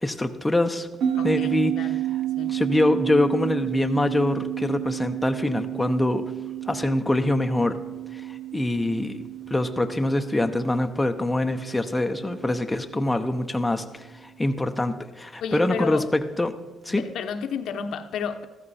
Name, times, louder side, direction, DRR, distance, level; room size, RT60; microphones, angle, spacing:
voice 1, 0.0-0.9 1.2-1.8 2.5-6.2 6.7-7.8 8.1-9.2 9.5-16.6 16.8-17.0, left 1 dB, 10° left, 5 dB, 0.9 m, -24 dB
sound 1, 1.0-13.8, right 12 dB, 75° right, 1.0 m, -31 dB
voice 2, 1.1-2.0 2.4-2.6 15.4-16.1 16.9-18.4, left 6 dB, 75° left, 6 dB, 1.0 m, -32 dB
14.0 x 13.5 x 4.2 m, 1.2 s
cardioid pair, 90°, 0 cm